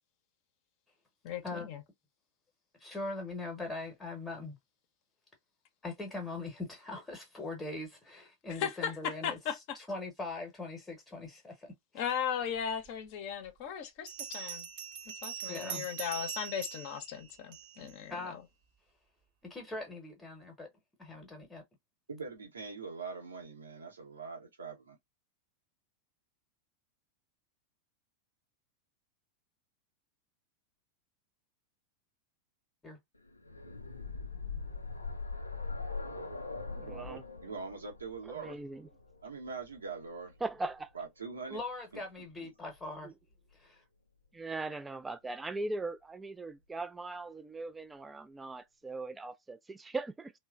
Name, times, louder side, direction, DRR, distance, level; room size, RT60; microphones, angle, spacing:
voice 1, 1.2-1.8 8.5-9.8 11.9-14.7 15.2-18.4, left 8 dB, 45° left, 0.7 m, -37 dB
voice 2, 2.8-4.6 5.8-9.4 9.7-11.7 15.5-15.9 18.1-18.4 19.4-20.7 21.0-21.6 32.8-33.0 41.5-43.1 43.5-43.8, left 2 dB, 15° left, 0.9 m, -41 dB
Bell, 12.9-13.0 14.1-18.0, right 9 dB, 45° right, 0.7 m, -42 dB
voice 3, 22.1-25.0 36.8-38.6 39.2-40.3 40.9-41.6 41.9-42.0, right 4 dB, 75° right, 0.8 m, -43 dB
sound 1, 33.3-41.1 42.2-42.3 42.7-42.8, left 4 dB, 85° left, 0.4 m, -42 dB
voice 4, 36.8-37.2 38.3-38.9 40.4-40.9 43.0-43.1 44.3-50.3, right 2 dB, 10° right, 0.3 m, -39 dB
3.0 x 2.1 x 2.3 m
figure-of-eight pair, 90°, 0 cm